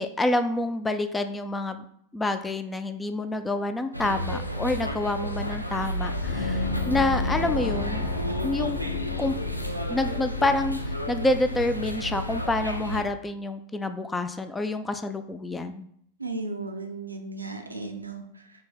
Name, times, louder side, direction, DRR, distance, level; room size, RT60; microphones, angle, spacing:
voice 1, 0.0-1.8 2.1-8.0 8.4-8.8 9.2-9.3 9.9-15.9, left 2 dB, 10° left, 9 dB, 0.3 m, -28 dB
sound 1, 3.9-13.0, equal, 90° left, 0.4 m, -32 dB
Gong, 6.2-11.5, left 3 dB, 55° left, 1.3 m, -32 dB
voice 2, 16.2-18.4, right 3 dB, 80° right, 5 dB, 0.5 m, -35 dB
4.7 x 2.1 x 4.2 m, 0.68 s
figure-of-eight pair, 90°, 0 cm